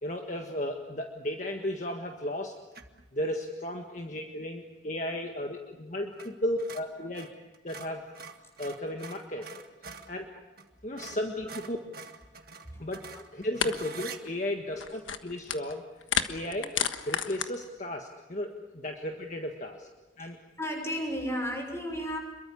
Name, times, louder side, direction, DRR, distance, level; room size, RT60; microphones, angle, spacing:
voice 1, 0.0-2.5 3.1-7.3 7.6-8.1 8.6-9.5 10.1-10.3 10.8-11.8 12.8-13.0 13.3-15.8 16.3-16.7 17.1-19.9 20.2-20.4, left 1 dB, 40° left, 3 dB, 1.6 m, -34 dB
sound 1, 2.7-3.0 6.1-6.3 6.6-10.1 10.6-10.7 11.0-14.2, right 5 dB, 50° right, 1.7 m, -45 dB
sound 2, 12.9-13.0 13.6-13.7 14.0-14.3 14.7-15.7 16.0-17.5, left 7 dB, 90° left, 1.5 m, -31 dB
voice 2, 20.2-22.2, equal, 15° left, 2 dB, 5.9 m, -35 dB
27.5 x 23.0 x 7.1 m, 1.1 s
head